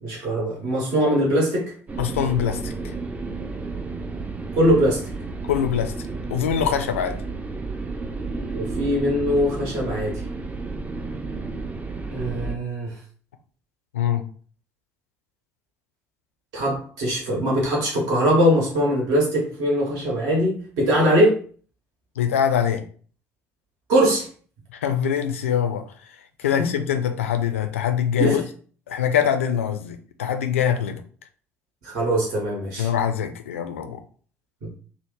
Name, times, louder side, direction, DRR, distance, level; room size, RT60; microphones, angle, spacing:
voice 1, 0.0-1.7 4.5-5.0 8.5-10.2 12.1-12.9 16.5-21.3 23.9-24.3 26.6-26.7 28.2-28.4 31.8-32.9, equal, 60° right, 1.1 m, -21 dB
sound 1, 1.9-12.6, right 3 dB, 20° right, 0.5 m, -32 dB
voice 2, 2.0-2.9 5.5-5.9 6.3-7.2 13.9-14.2 22.2-22.8 24.7-25.9 26.4-28.4 28.9-31.0 32.8-34.0, left 8 dB, 75° left, 0.4 m, -23 dB
2.9 x 2.0 x 3.7 m
figure-of-eight pair, 55°, 7 cm